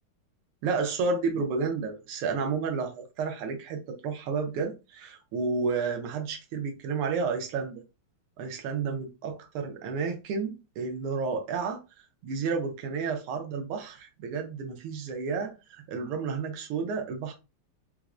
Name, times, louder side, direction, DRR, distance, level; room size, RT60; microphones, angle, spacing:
voice 1, 0.6-7.8 8.4-11.8 12.2-17.3, right 5 dB, 85° right, 1.6 m, -31 dB
4.4 x 2.0 x 2.4 m
omnidirectional pair, 2.4 m